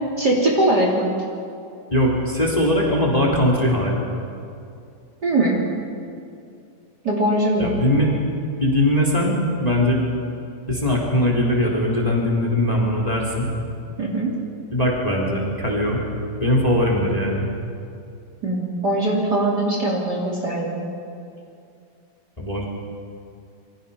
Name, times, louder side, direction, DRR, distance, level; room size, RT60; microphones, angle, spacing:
voice 1, 0.2-1.1 5.2-5.6 7.0-7.7 14.0-14.3 18.4-20.8, right 1 dB, 35° right, -2 dB, 3.5 m, -21 dB
voice 2, 1.9-4.0 7.6-8.1 8.6-10.0 10.7-13.5 14.7-16.0 16.4-17.5 22.4-22.6, left 1 dB, 10° left, -2 dB, 3.5 m, -20 dB
28.0 x 24.0 x 5.7 m, 2.5 s
omnidirectional pair, 3.4 m